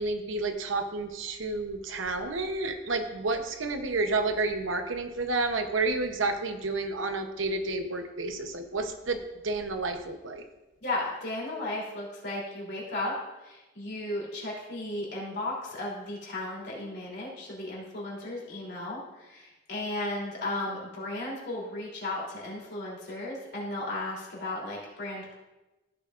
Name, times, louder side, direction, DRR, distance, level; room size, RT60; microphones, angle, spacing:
voice 1, 0.0-10.4, right 3 dB, 90° right, 7 dB, 0.9 m, -30 dB
voice 2, 10.8-13.2 13.4-25.3, left 2 dB, 60° left, -4 dB, 3.2 m, -35 dB
15.0 x 6.9 x 2.5 m, 1.1 s
head